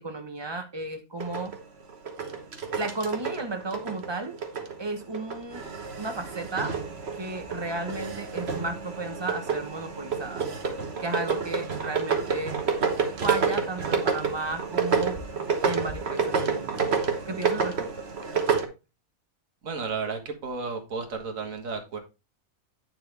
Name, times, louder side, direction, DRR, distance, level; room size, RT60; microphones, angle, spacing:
voice 1, 0.0-1.6 2.8-4.4 4.8-5.7 6.0-6.8 7.1-10.4 11.0-12.6 13.2-15.2 15.6-16.8 17.2-18.1, right 3 dB, 20° right, 1.0 m, -33 dB
sound 1, 1.2-4.7 5.0-18.7, right 5 dB, 50° right, 1.4 m, -29 dB
voice 2, 19.6-22.0, right 4 dB, 70° right, 1.9 m, -33 dB
9.4 x 5.9 x 3.4 m
omnidirectional pair, 1.5 m